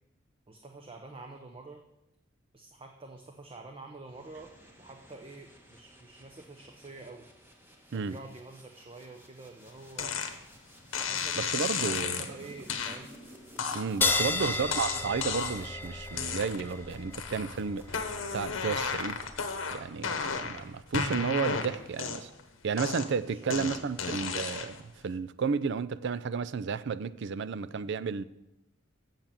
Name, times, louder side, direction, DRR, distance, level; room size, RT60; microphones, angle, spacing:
voice 1, 0.5-1.8 2.5-4.5 4.8-7.2 7.9-10.2 11.0-13.1 14.1-14.8 23.2-24.3, right 3 dB, 30° right, 0.7 m, -48 dB
sound 1, 4.1-18.4, equal, 10° right, 1.2 m, -55 dB
sound 2, 10.0-10.3 10.9-12.3 12.7-13.0 13.6-15.7 16.1-16.8 17.1-17.6 17.9-20.6 20.9-22.4 22.8-24.8, left 6 dB, 90° left, 1.0 m, -33 dB
voice 2, 11.4-12.3 13.7-17.8 18.3-19.2 19.7-22.3 22.6-24.8 25.0-28.2, right 5 dB, 60° right, 0.4 m, -32 dB
sound 3, 14.0-21.0, left 3 dB, 10° left, 0.4 m, -35 dB
7.8 x 7.4 x 6.8 m
head